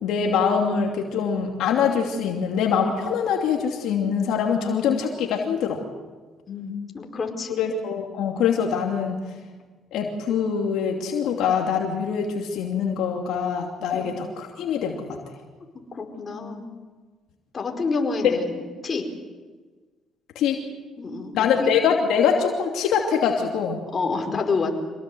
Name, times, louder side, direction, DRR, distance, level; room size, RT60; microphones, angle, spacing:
voice 1, 0.0-5.8 7.6-9.2 9.9-15.2 18.2-18.3 20.3-20.6 21.3-23.8, left 7 dB, 75° left, 1 dB, 2.7 m, -24 dB
voice 2, 6.5-7.6 13.9-14.1 16.0-16.6 17.5-18.6 18.8-19.1 21.0-21.7 23.9-24.7, left 4 dB, 40° left, 3 dB, 5.0 m, -28 dB
26.5 x 18.0 x 8.0 m, 1.4 s
supercardioid pair, 75°, 0 cm